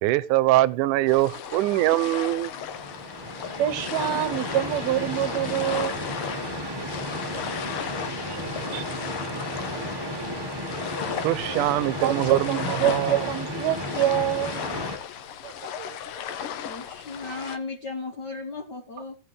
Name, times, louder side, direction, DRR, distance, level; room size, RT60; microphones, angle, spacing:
voice 1, 0.0-2.5 8.7-8.8 11.2-13.3 15.4-15.5, right 16 dB, 85° right, 2.2 m, -23 dB
sound 1, 1.1-17.6, left 9 dB, 80° left, 1.2 m, -35 dB
sound 2, 2.4-15.0, equal, 15° right, 0.9 m, -34 dB
voice 2, 3.6-6.0 12.0-14.6, right 11 dB, 70° right, 2.0 m, -26 dB
voice 3, 16.6-19.2, left 3 dB, 60° left, 1.1 m, -35 dB
17.0 x 7.5 x 3.2 m
omnidirectional pair, 3.5 m